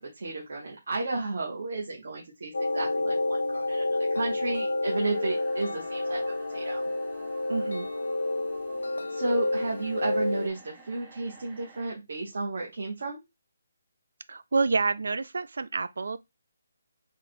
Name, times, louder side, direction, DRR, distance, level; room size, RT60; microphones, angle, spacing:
voice 1, 0.0-6.2 6.5-6.8 9.1-13.2, right 3 dB, 50° right, 1.0 m, -33 dB
sound 1, 2.5-10.5, left 2 dB, 85° left, 0.7 m, -29 dB
sound 2, 4.9-11.9, right 3 dB, 10° right, 0.5 m, -52 dB
voice 2, 7.5-7.9 14.3-16.2, right 4 dB, 65° right, 0.3 m, -28 dB
3.6 x 2.2 x 4.1 m
hypercardioid pair, 180°, 0 cm